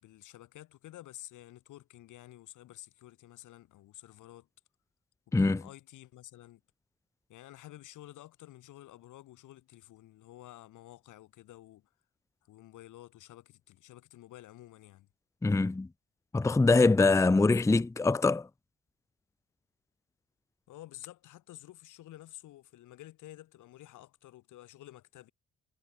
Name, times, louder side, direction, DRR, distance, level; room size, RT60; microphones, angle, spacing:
voice 1, 0.0-4.5 5.3-6.6 7.3-11.9 12.4-15.1 20.7-25.3, left 14 dB, 85° left, 3.6 m, -51 dB
voice 2, 15.4-15.9 16.3-18.5, left 3 dB, 10° left, 0.6 m, -23 dB
cardioid pair, 90°, 30 cm